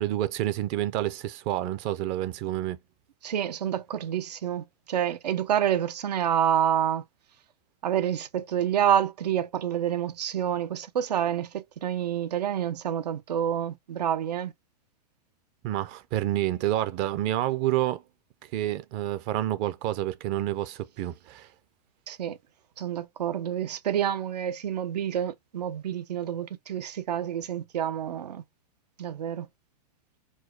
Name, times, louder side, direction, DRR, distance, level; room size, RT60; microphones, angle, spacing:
voice 1, 0.0-2.8 15.6-18.0 18.5-21.5, right 13 dB, 30° right, 0.5 m, -28 dB
voice 2, 3.2-7.0 7.8-14.5 22.1-22.4 22.8-28.4 29.0-29.5, right 10 dB, 85° right, 0.9 m, -28 dB
4.6 x 2.3 x 4.5 m
hypercardioid pair, 155°, 21 cm